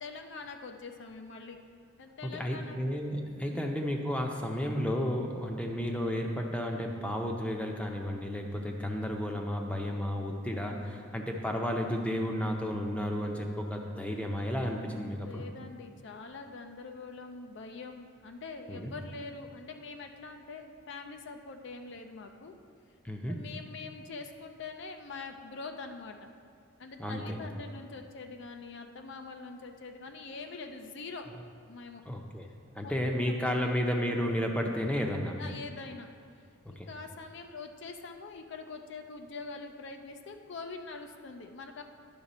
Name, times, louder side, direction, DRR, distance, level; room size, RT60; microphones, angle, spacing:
voice 1, 0.0-1.6 2.0-2.8 3.4-3.6 15.1-22.5 23.3-26.3 26.8-31.3 31.7-32.0 32.8-33.6 35.4-36.1 36.7-41.8, left 4 dB, 60° left, 5 dB, 0.5 m, -44 dB
voice 2, 2.2-15.4 18.7-18.9 23.0-23.4 27.0-27.4 32.1-32.5 32.8-35.4 36.8-36.9, equal, 5° left, 2 dB, 0.6 m, -32 dB
10.5 x 5.9 x 4.2 m, 2.2 s
head